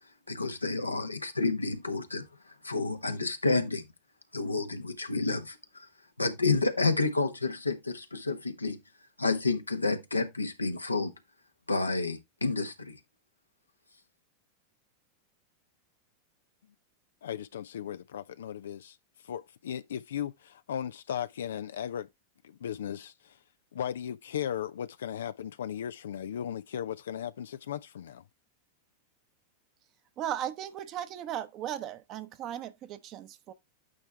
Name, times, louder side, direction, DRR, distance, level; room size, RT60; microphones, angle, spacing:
voice 1, 0.3-2.3 2.6-3.8 4.3-5.6 6.2-8.8 9.2-11.1 11.7-13.0, left 3 dB, 80° left, 1.1 m, -29 dB
voice 2, 17.2-19.0 19.2-22.1 22.4-23.4 23.7-28.2, left 9 dB, 65° left, 0.3 m, -36 dB
voice 3, 30.2-33.5, right 11 dB, 35° right, 0.9 m, -37 dB
8.8 x 4.5 x 3.3 m
figure-of-eight pair, 90°, 0 cm